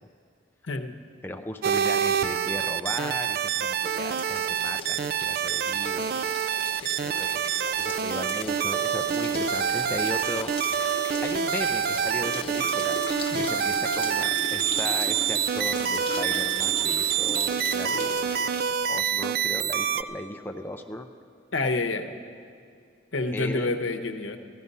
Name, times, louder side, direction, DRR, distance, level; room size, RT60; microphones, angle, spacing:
voice 1, 0.6-0.9 6.8-6.9 13.3-13.4 21.5-22.1 23.1-24.4, left 3 dB, 85° left, 6 dB, 0.9 m, -28 dB
voice 2, 1.2-6.2 7.0-7.5 7.8-10.5 11.2-13.0 13.4-18.5 18.9-21.1 23.3-23.8, left 1 dB, 10° left, 4 dB, 0.5 m, -36 dB
sound 1, 1.6-20.0, right 8 dB, 50° right, 0.3 m, -27 dB
sound 2, 3.7-18.8, left 3 dB, 30° left, 1.3 m, -38 dB
15.5 x 14.0 x 5.5 m, 2.3 s
head